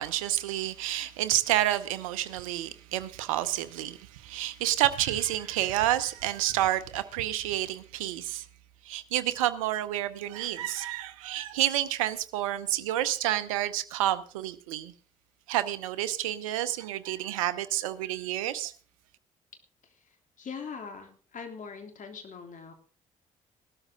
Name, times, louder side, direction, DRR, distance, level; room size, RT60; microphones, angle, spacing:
voice 1, 0.0-8.5 8.8-14.9 15.5-18.7, right 13 dB, 75° right, 0.8 m, -29 dB
voice 2, 19.8-22.7, left 5 dB, 50° left, 3.4 m, -42 dB
17.5 x 13.0 x 3.8 m
figure-of-eight pair, 40°, 17 cm